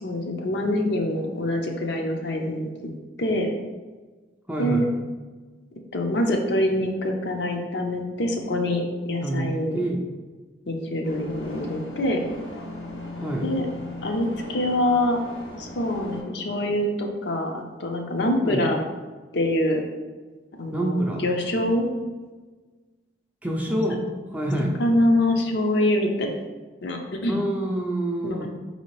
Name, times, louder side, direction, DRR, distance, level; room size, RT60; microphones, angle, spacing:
voice 1, 0.0-2.7 3.2-3.5 4.6-4.8 5.9-9.8 10.7-12.2 13.4-13.6 14.0-15.2 15.6-18.8 19.3-19.8 20.6-21.9 23.7-23.8 24.8-26.3 26.8-27.4 28.2-28.5, left 1 dB, 60° left, 3 dB, 0.5 m, -25 dB
voice 2, 4.5-5.0 9.2-10.0 13.2-13.5 18.4-18.7 20.7-21.2 23.4-24.0 24.3-24.8 27.3-28.5, right 1 dB, 10° right, -1 dB, 0.4 m, -27 dB
sound 1, 11.0-16.2, left 1 dB, 80° left, 1.1 m, -38 dB
4.9 x 2.8 x 3.0 m, 1.3 s
head